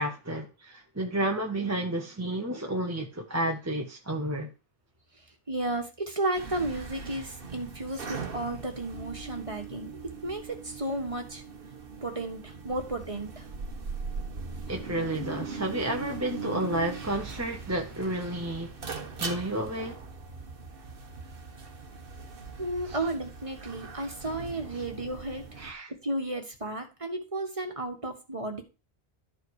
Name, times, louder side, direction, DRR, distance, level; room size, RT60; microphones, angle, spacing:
voice 1, 0.0-4.5 14.7-18.8 19.2-20.0 22.8-23.0 24.7-24.8 25.6-25.9, right 1 dB, 15° right, 1.0 m, -31 dB
voice 2, 5.5-11.4 12.0-13.4 22.6-25.4 26.0-28.6, right 2 dB, 30° right, 1.7 m, -33 dB
sound 1, 6.3-25.7, right 5 dB, 60° right, 1.4 m, -40 dB
12.5 x 5.1 x 4.8 m
omnidirectional pair, 1.1 m